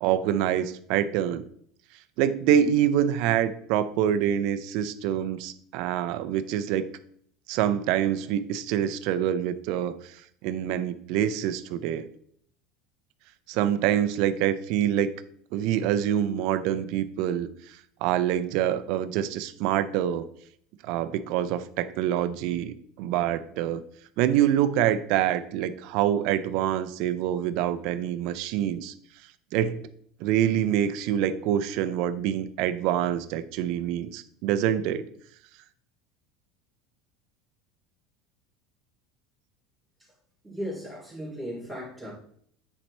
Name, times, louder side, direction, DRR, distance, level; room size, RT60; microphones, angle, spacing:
voice 1, 0.0-1.5 2.2-6.9 7.5-12.1 13.5-15.1 15.5-20.3 20.8-23.8 24.2-28.9 29.5-29.8 30.2-35.0, right 10 dB, 65° right, 12 dB, 0.5 m, -26 dB
voice 2, 40.4-42.1, equal, 5° right, -5 dB, 3.0 m, -36 dB
9.7 x 4.3 x 3.3 m, 0.64 s
supercardioid pair, 125°, 0 cm